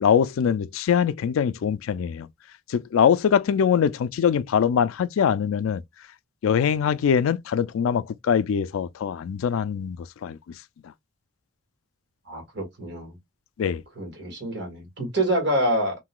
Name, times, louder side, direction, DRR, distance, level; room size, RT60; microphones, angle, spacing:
voice 1, 0.0-2.3 2.7-5.8 6.4-10.4 13.6-13.8, left 7 dB, 90° left, 0.3 m, -23 dB
voice 2, 12.3-13.2 14.0-16.0, right 1 dB, 55° right, 1.8 m, -26 dB
3.7 x 2.7 x 2.2 m
head